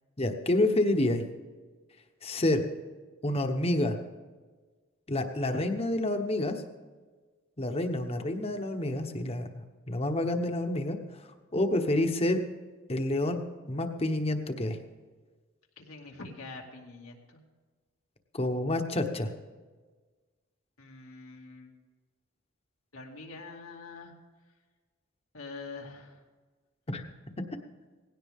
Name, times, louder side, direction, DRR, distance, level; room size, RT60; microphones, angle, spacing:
voice 1, 0.2-1.2 2.2-2.6 3.2-4.0 5.1-6.6 7.6-9.5 9.9-11.0 11.5-12.4 12.9-13.4 13.7-14.8 18.3-19.3 26.9-27.0, left 1 dB, 30° left, 6 dB, 1.1 m, -28 dB
voice 2, 15.8-17.4 20.8-21.7 22.9-24.1 25.3-26.2, left 3 dB, 90° left, 0 dB, 2.4 m, -45 dB
18.5 x 16.5 x 3.6 m, 1.4 s
head